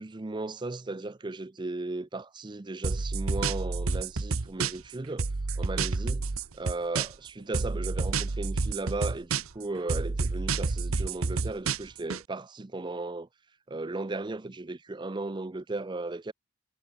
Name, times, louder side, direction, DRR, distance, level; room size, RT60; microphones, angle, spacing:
voice 1, 0.0-5.3 5.6-13.3 13.7-16.3, right 2 dB, 20° right, 0.5 m, -36 dB
sound 1, 2.8-4.9 5.2-7.3 7.5-9.6 9.9-12.2, right 4 dB, 80° right, 1.0 m, -29 dB
head